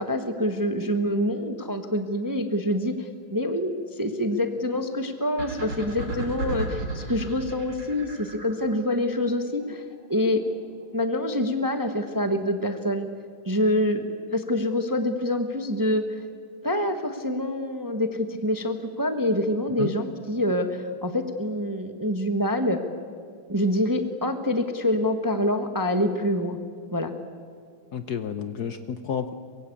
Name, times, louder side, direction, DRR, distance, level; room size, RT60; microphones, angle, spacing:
voice 1, 0.0-9.8 10.1-10.4 10.9-13.1 13.5-14.0 14.3-16.0 16.6-22.8 23.5-26.6 26.9-27.1, left 1 dB, 15° right, 7 dB, 0.9 m, -26 dB
sound 1, 5.4-8.8, right 3 dB, 90° right, 4.2 m, -33 dB
voice 2, 27.9-29.3, left 8 dB, 60° left, 10 dB, 1.2 m, -30 dB
24.5 x 22.0 x 8.5 m, 2.1 s
omnidirectional pair, 2.3 m